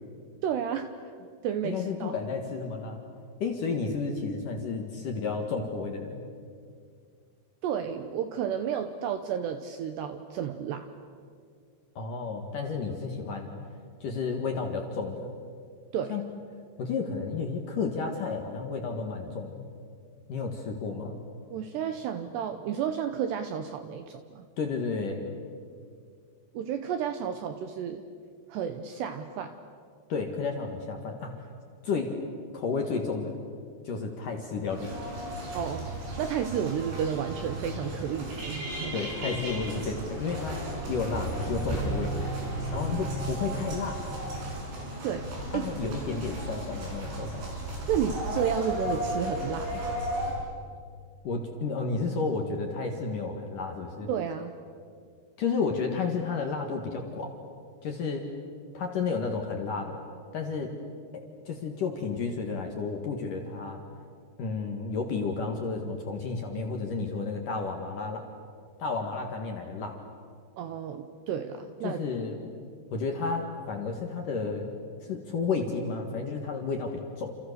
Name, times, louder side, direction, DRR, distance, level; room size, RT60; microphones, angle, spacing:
voice 1, 0.4-0.9 1.4-2.2 7.6-10.9 15.9-16.2 21.5-24.5 26.5-28.0 28.5-29.5 35.4-35.9 36.2-38.9 45.0-45.7 47.9-49.8 54.1-54.5 70.6-72.0, right 8 dB, 80° right, 8 dB, 2.6 m, -32 dB
voice 2, 1.6-3.0 3.4-6.2 12.0-13.5 14.0-15.3 16.1-16.2 16.8-19.7 20.3-21.2 24.6-25.2 30.1-31.4 31.8-32.1 32.5-33.4 33.8-34.9 38.9-40.6 40.9-42.1 42.7-44.0 45.5-47.5 51.2-54.1 55.4-57.3 57.8-58.3 58.7-60.0 60.3-60.7 61.1-63.8 64.4-68.2 68.8-70.0 71.8-72.5 72.9-74.7 75.1-77.4, left 4 dB, 55° left, 3 dB, 2.5 m, -32 dB
sound 1, 34.7-50.3, right 1 dB, 55° right, 8.4 m, -34 dB
29.5 x 28.5 x 6.8 m, 2.2 s
omnidirectional pair, 6.0 m